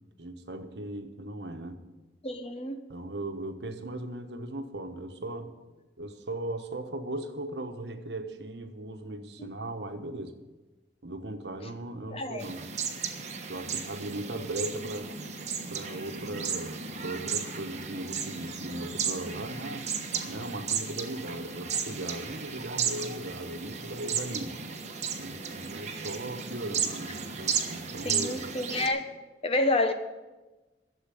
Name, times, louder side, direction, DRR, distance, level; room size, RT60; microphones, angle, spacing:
voice 1, 0.2-1.8 2.9-5.5 6.0-10.4 11.0-12.8 13.5-15.2 15.7-19.9 20.3-24.6 25.2-28.4, right 1 dB, 70° right, 6 dB, 1.2 m, -38 dB
voice 2, 2.2-2.8 12.1-12.4 28.0-29.0 29.4-29.9, left 2 dB, 35° left, 7 dB, 1.0 m, -28 dB
sound 1, 12.4-28.9, right 6 dB, 40° right, 1.3 m, -34 dB
12.0 x 7.4 x 9.9 m, 1.1 s
head